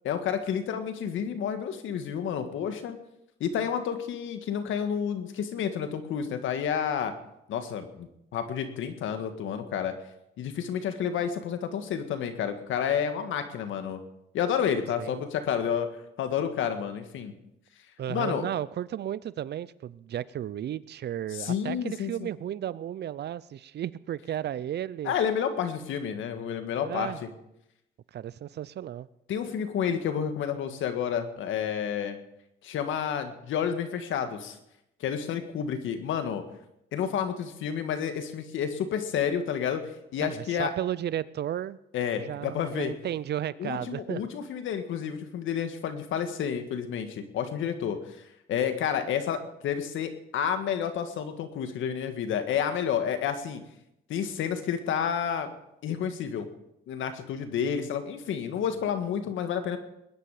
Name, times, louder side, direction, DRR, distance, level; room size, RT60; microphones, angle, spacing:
voice 1, 0.1-3.0 3.4-7.1 7.5-9.9 10.4-14.0 14.3-15.9 16.2-17.3 18.1-18.4 21.3-22.3 25.0-27.3 29.3-32.2 32.6-34.6 35.0-36.4 36.9-39.8 40.1-40.7 41.9-42.9 43.6-48.2 48.5-53.6 54.1-55.5 55.8-56.5 56.9-59.8, left 8 dB, 80° left, 8 dB, 1.7 m, -30 dB
voice 2, 18.0-25.1 26.8-27.2 28.1-29.1 40.2-41.8 42.2-44.2, right 11 dB, 55° right, 19 dB, 0.6 m, -34 dB
20.5 x 10.5 x 5.0 m, 0.81 s
cardioid pair, 90°, 20 cm